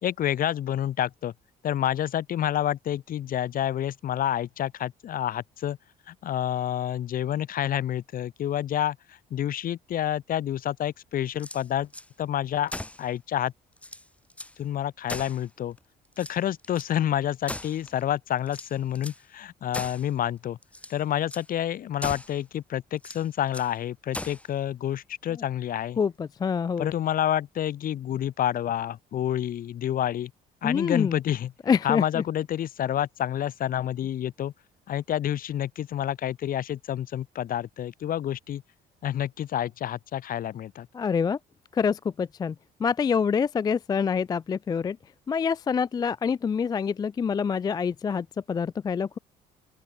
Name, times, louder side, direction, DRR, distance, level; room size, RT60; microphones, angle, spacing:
voice 1, 0.0-1.3 1.6-5.8 6.1-11.9 12.2-12.7 13.0-13.5 14.6-15.8 16.2-20.6 20.9-26.0 26.8-30.3 30.6-31.5 31.8-34.5 34.9-38.6 39.0-40.9, left 11 dB, 55° left, 2.2 m, -28 dB
sound 1, 11.3-12.1 12.7-13.1 13.5-13.6 13.8-14.6 15.1-15.8 16.1-16.9 17.5-18.0 18.5-19.2 19.7-20.1 20.6-21.0 21.3-21.5 22.0-22.4 23.0-23.7 24.1-24.5, left 1 dB, 5° left, 1.6 m, -39 dB
voice 2, 26.0-26.9 30.6-31.2 31.7-32.2 40.9-41.4 41.7-45.0 45.3-49.2, left 6 dB, 25° left, 0.3 m, -26 dB
open air
cardioid pair, 110°, 17 cm